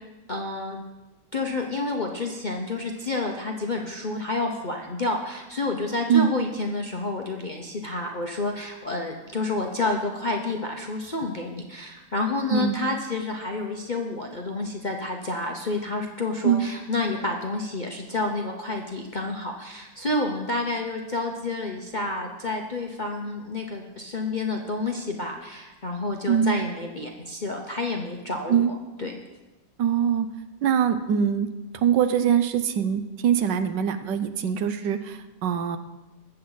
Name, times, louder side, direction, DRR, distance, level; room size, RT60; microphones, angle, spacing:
voice 1, 0.3-0.8 1.3-29.1, left 2 dB, 40° left, 2 dB, 0.7 m, -29 dB
voice 2, 12.5-13.0 16.4-16.7 26.3-26.6 28.5-28.8 29.8-30.3 30.6-31.5 31.7-35.8, right 8 dB, 75° right, 9 dB, 1.4 m, -23 dB
21.0 x 7.8 x 4.0 m, 1.1 s
omnidirectional pair, 2.0 m